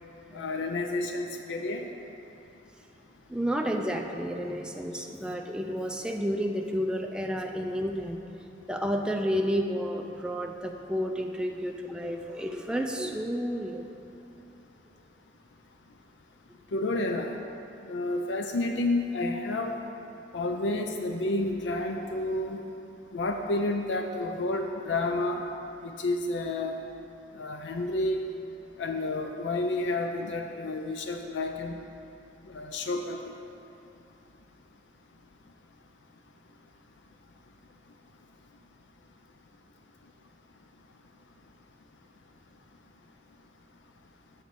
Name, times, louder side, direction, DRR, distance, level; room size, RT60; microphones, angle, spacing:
voice 1, 0.3-1.9 16.7-17.4 17.9-19.7 20.3-22.6 23.1-25.4 25.8-26.8 27.4-28.2 28.8-31.8 32.5-33.2, left 2 dB, 70° left, 4 dB, 0.5 m, -30 dB
voice 2, 3.3-8.2 8.7-13.9, equal, 5° right, 2 dB, 0.3 m, -31 dB
7.7 x 4.0 x 6.6 m, 2.8 s
head